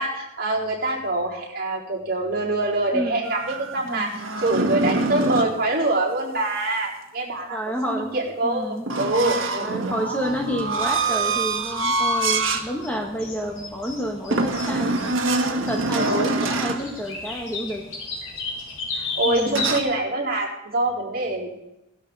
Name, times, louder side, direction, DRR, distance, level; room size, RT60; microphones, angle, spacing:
voice 1, 0.0-7.6 7.8-10.3 15.9-16.3 18.9-21.5, right 2 dB, 50° right, -4 dB, 4.2 m, -25 dB
voice 2, 2.9-3.2 3.8-4.1 7.5-8.1 8.4-8.9 9.6-15.2 15.5-17.8 19.2-19.7, equal, 10° left, 1 dB, 1.3 m, -29 dB
sound 1, 3.3-5.6 8.9-12.7 13.1-13.3 14.3-16.9 19.5-19.8, right 3 dB, 70° right, 1.4 m, -25 dB
sound 2, 10.2-19.7, left 3 dB, 75° left, 4.9 m, -35 dB
18.0 x 12.5 x 4.1 m, 0.90 s
head